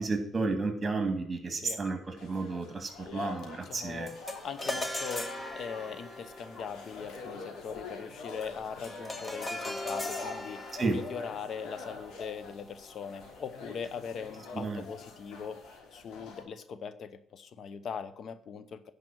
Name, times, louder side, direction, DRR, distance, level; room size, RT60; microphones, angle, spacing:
voice 1, 0.0-4.1 10.8-11.0 14.5-14.8, right 3 dB, 30° right, 6 dB, 2.6 m, -32 dB
sound 1, 2.2-16.4, left 4 dB, 85° left, 3.1 m, -45 dB
voice 2, 3.6-4.1 4.4-15.6 15.9-18.9, left 6 dB, 60° left, 13 dB, 0.9 m, -41 dB
sound 2, 4.1-13.6, left 1 dB, 15° left, 1.5 m, -40 dB
10.5 x 5.2 x 7.6 m, 0.70 s
cardioid pair, 90°, 0 cm